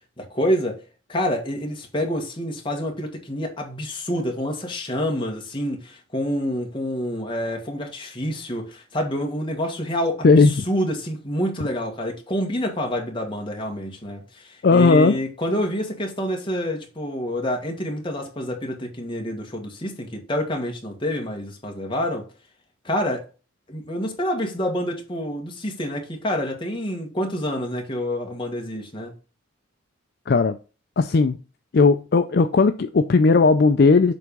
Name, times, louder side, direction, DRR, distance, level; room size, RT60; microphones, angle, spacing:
voice 1, 0.2-0.8 1.1-22.3 22.8-23.3 23.7-29.1, equal, 25° left, 1.5 m, -27 dB
voice 2, 14.6-15.2 30.3-30.6 31.0-31.4 31.7-34.1, left 4 dB, 50° left, 0.4 m, -16 dB
7.7 x 3.5 x 5.3 m
head